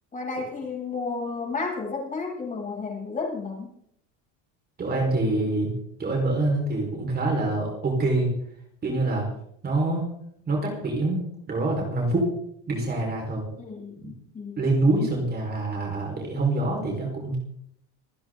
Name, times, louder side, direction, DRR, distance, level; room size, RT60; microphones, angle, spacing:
voice 1, 0.1-3.8 13.6-14.7, left 4 dB, 20° left, -2 dB, 7.8 m, -32 dB
voice 2, 4.8-5.7 6.0-8.3 8.8-9.3 9.6-10.1 10.5-12.3 12.7-13.5 14.0-14.1 14.6-17.4, right 2 dB, 25° right, 0 dB, 5.0 m, -25 dB
26.5 x 10.0 x 4.0 m, 0.70 s
supercardioid pair, 130°, 37 cm